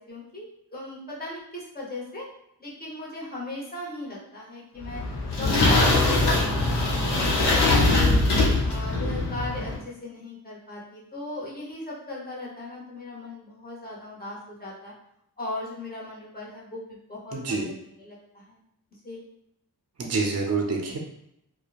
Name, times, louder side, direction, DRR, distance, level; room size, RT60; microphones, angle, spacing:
voice 1, 0.1-0.5 0.7-2.2 2.6-5.0 5.4-8.2 8.7-14.9 15.4-18.6 19.0-19.2, left 2 dB, 25° left, -5 dB, 0.9 m, -38 dB
sound 1, 4.8-9.8, left 2 dB, 90° left, 0.8 m, -22 dB
voice 2, 17.3-17.7 20.0-21.0, right 4 dB, 40° right, 1 dB, 0.5 m, -27 dB
2.8 x 2.1 x 2.4 m, 0.77 s
wide cardioid pair, 90°, 39 cm